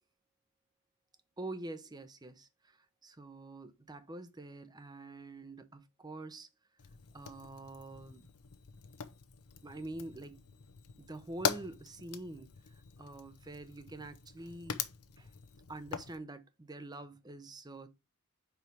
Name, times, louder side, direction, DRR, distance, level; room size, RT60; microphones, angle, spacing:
voice 1, 1.4-6.5 7.1-8.3 9.6-10.4 11.0-12.5 13.0-14.8 15.2-15.3 15.7-17.9, right 2 dB, 20° right, 0.7 m, -46 dB
Fire, 6.8-16.2, left 7 dB, 90° left, 0.8 m, -42 dB
4.8 x 4.7 x 5.2 m
head